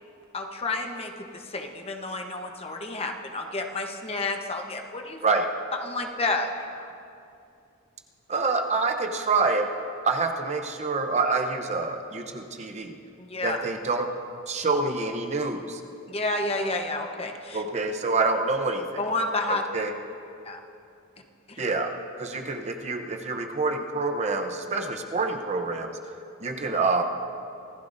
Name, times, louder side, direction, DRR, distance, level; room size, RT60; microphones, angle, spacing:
voice 1, 0.3-5.2 5.8-6.9 13.2-13.6 16.1-17.6 19.0-19.6 20.4-20.6 21.5-21.6, left 2 dB, 30° left, 3 dB, 1.0 m, -30 dB
voice 2, 8.3-9.7 10.0-12.9 13.4-14.1 14.5-15.8 17.5-19.0 19.5-19.9 21.6-26.0 26.4-27.0, right 3 dB, 35° right, 5 dB, 0.8 m, -27 dB
25.5 x 15.0 x 2.7 m, 2.5 s
head